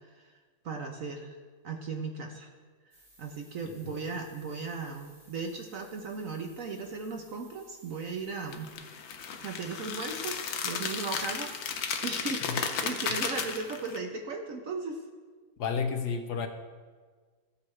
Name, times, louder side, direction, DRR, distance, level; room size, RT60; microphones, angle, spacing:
voice 1, 0.6-1.4 1.6-2.5 2.8-8.7 9.4-15.0, right 4 dB, 55° right, 3 dB, 1.0 m, -37 dB
sound 1, 2.9-8.8, right 1 dB, 75° right, 4.4 m, -59 dB
sound 2, 8.5-14.0, left 6 dB, 85° left, 1.6 m, -34 dB
voice 2, 15.6-16.5, left 6 dB, 65° left, 6 dB, 1.2 m, -31 dB
15.5 x 8.3 x 3.2 m, 1.5 s
omnidirectional pair, 2.0 m